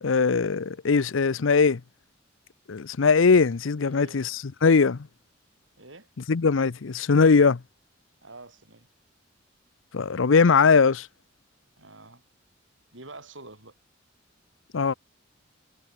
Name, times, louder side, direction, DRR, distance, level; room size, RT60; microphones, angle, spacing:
voice 1, 0.0-1.8 2.7-5.1 6.3-7.6 9.9-11.1 14.7-14.9, left 5 dB, 80° left, 0.6 m, -20 dB
voice 2, 3.8-4.3 5.8-6.1 8.2-8.9 11.8-12.2 12.9-13.7, right 2 dB, 75° right, 6.3 m, -47 dB
head